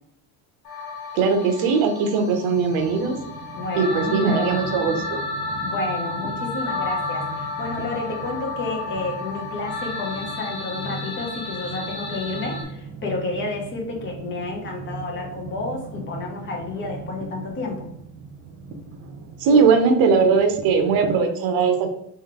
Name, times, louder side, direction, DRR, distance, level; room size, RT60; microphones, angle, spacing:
sound 1, 0.6-12.6, left 3 dB, 90° left, 1.3 m, -32 dB
voice 1, 1.1-3.2 3.8-5.2 19.4-21.9, right 5 dB, 70° right, 6 dB, 0.9 m, -19 dB
sound 2, 2.5-21.2, right 3 dB, 40° right, 0.5 m, -39 dB
voice 2, 3.5-4.6 5.6-17.9, left 3 dB, 30° left, 0 dB, 1.1 m, -30 dB
3.3 x 3.2 x 3.7 m, 0.71 s
cardioid pair, 150°, 37 cm